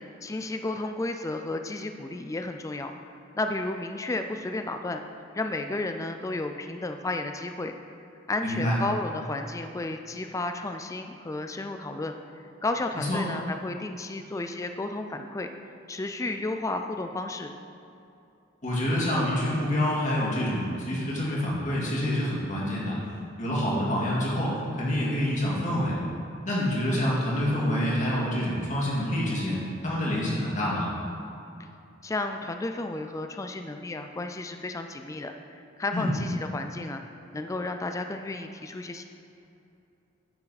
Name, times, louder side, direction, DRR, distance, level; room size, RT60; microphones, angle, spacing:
voice 1, 0.0-2.9 3.4-5.0 5.3-7.7 8.3-15.5 15.9-17.5 32.0-37.0 37.3-39.0, left 2 dB, 15° left, 6 dB, 0.3 m, -33 dB
voice 2, 8.4-8.8 13.0-13.2 18.6-23.0 23.4-26.0 26.4-29.6 29.8-30.9 35.9-36.1, left 1 dB, 40° left, -5 dB, 2.1 m, -27 dB
9.8 x 6.5 x 4.1 m, 2.7 s
head